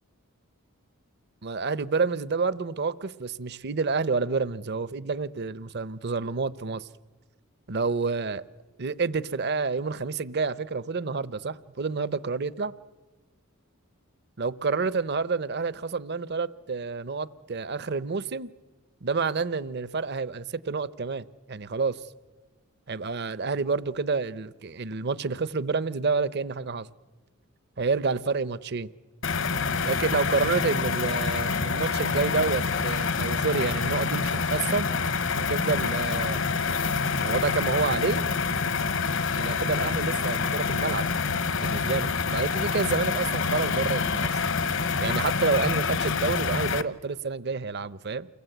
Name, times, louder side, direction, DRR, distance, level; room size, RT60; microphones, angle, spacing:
voice 1, 1.4-6.9 7.7-8.4 8.8-12.7 14.4-18.5 19.0-22.0 22.9-26.9 27.8-28.9 29.9-34.9 35.3-36.5 37.2-38.2 39.4-41.1 41.5-44.4 45.0-48.3, right 4 dB, 50° right, 17 dB, 0.7 m, -29 dB
sound 1, 29.2-46.8, left 5 dB, 60° left, 1.0 m, -27 dB
29.0 x 22.0 x 8.0 m, 1.3 s
head